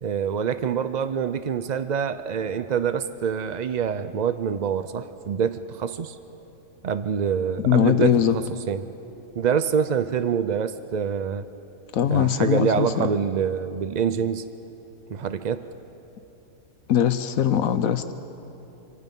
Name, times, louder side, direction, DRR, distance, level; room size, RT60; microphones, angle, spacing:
voice 1, 0.0-6.2 6.8-8.9 9.4-11.4 12.1-14.4 15.1-15.7, right 7 dB, 65° right, 11 dB, 0.4 m, -26 dB
voice 2, 7.6-8.3 11.9-13.1 16.9-18.1, left 9 dB, 80° left, 11 dB, 1.2 m, -21 dB
26.0 x 25.5 x 5.4 m, 3.0 s
omnidirectional pair, 1.4 m